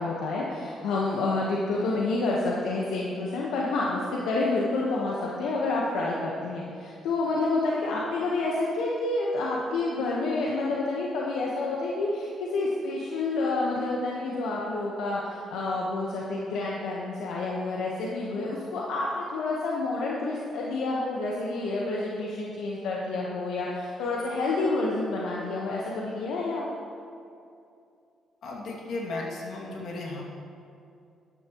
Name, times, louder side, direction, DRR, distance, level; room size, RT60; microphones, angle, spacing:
voice 1, 0.0-26.6, left 2 dB, 85° left, -4 dB, 1.2 m, -29 dB
voice 2, 28.4-30.2, left 2 dB, 65° left, -3 dB, 2.4 m, -35 dB
12.5 x 11.5 x 3.1 m, 2.5 s
cardioid pair, 90°, 0 cm